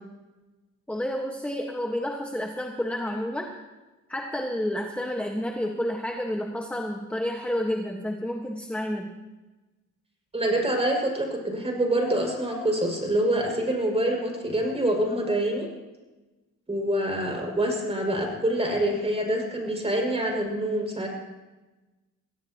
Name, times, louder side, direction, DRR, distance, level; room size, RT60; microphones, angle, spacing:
voice 1, 0.9-3.5 4.1-9.1, left 1 dB, 5° left, 2 dB, 1.5 m, -30 dB
voice 2, 10.3-15.7 16.7-21.1, right 1 dB, 20° right, 0 dB, 6.1 m, -26 dB
23.5 x 16.5 x 3.0 m, 1.1 s
cardioid pair, 90°, 30 cm